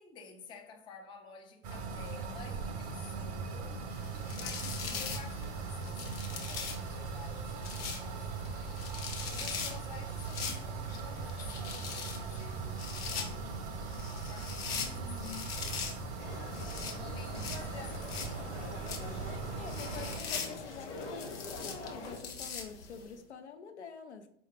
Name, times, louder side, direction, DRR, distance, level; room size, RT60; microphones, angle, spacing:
voice 1, 0.0-3.8 4.3-8.9 9.3-12.6 13.1-15.1 15.4-16.2 16.7-18.9, left 5 dB, 15° left, 0.4 m, -52 dB
sound 1, 1.6-20.2, right 4 dB, 35° right, 0.6 m, -40 dB
sound 2, 3.9-23.1, left 6 dB, 60° left, 0.8 m, -42 dB
voice 2, 4.6-5.0 14.8-15.6 17.3-17.5 19.6-24.3, left 6 dB, 80° left, 0.6 m, -47 dB
sound 3, 16.2-22.2, left 2 dB, 35° left, 1.0 m, -44 dB
4.8 x 2.3 x 3.3 m
figure-of-eight pair, 95°, 34 cm